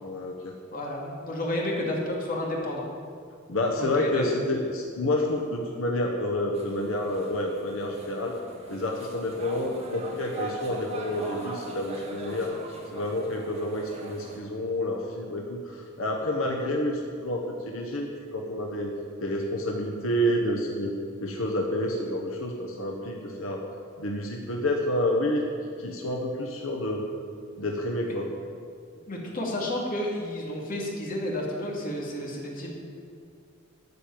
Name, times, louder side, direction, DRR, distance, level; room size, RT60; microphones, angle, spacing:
voice 1, 0.0-0.5 3.5-8.4 8.7-12.5 12.9-18.9 19.2-20.9 21.2-23.6 24.0-25.5 25.8-27.1 27.6-28.3, left 1 dB, 85° left, 1 dB, 1.2 m, -29 dB
voice 2, 0.7-2.8 3.8-4.3 29.1-32.7, left 1 dB, 45° left, -2 dB, 2.3 m, -31 dB
sound 1, 6.5-14.4, right 2 dB, 30° right, 1.9 m, -41 dB
12.5 x 5.2 x 9.1 m, 2.2 s
head